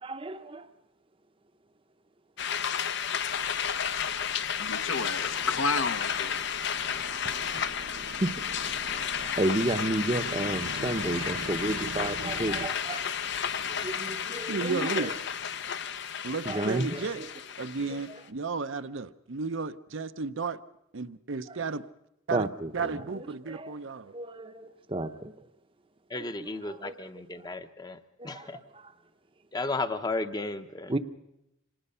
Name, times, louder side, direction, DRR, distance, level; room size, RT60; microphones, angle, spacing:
voice 1, 0.0-0.7 7.2-7.4 8.2-8.3 8.6-8.8 9.2-13.1 13.8-15.1 16.4-17.3 22.3-23.7 24.1-25.3 26.7-26.9 28.2-28.5 30.9-31.0, right 1 dB, 25° right, 0.8 m, -32 dB
sound 1, 2.4-18.2, left 8 dB, 55° left, 0.7 m, -32 dB
sound 2, 3.3-12.7, right 2 dB, 85° right, 1.3 m, -43 dB
voice 2, 4.6-6.4, left 4 dB, 70° left, 1.2 m, -31 dB
voice 3, 14.5-15.1 16.2-17.2 17.6-20.6 20.9-21.9 22.3-22.5 22.7-24.1, right 4 dB, 65° right, 0.7 m, -33 dB
voice 4, 26.1-28.6 29.5-30.9, left 2 dB, 20° left, 0.8 m, -34 dB
26.0 x 19.5 x 5.6 m
head